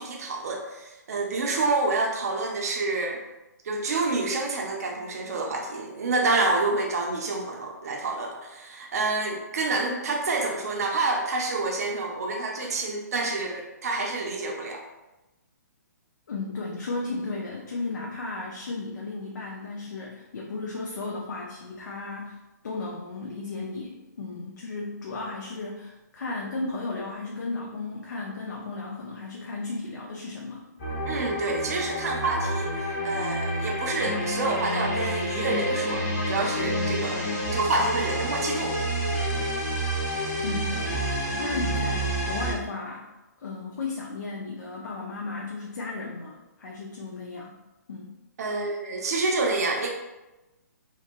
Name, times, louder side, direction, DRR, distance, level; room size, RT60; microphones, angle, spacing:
voice 1, 0.0-3.2 3.6-14.8 31.0-38.7 48.4-49.9, right 3 dB, 60° right, 0 dB, 0.5 m, -28 dB
voice 2, 16.3-30.7 40.4-41.0 41.3-43.1 43.4-47.6 47.9-48.2, left 3 dB, 80° left, -2 dB, 0.5 m, -34 dB
sound 1, 30.8-42.5, equal, 35° left, 0.9 m, -29 dB
2.9 x 2.6 x 2.5 m, 1.0 s
hypercardioid pair, 175°, 10 cm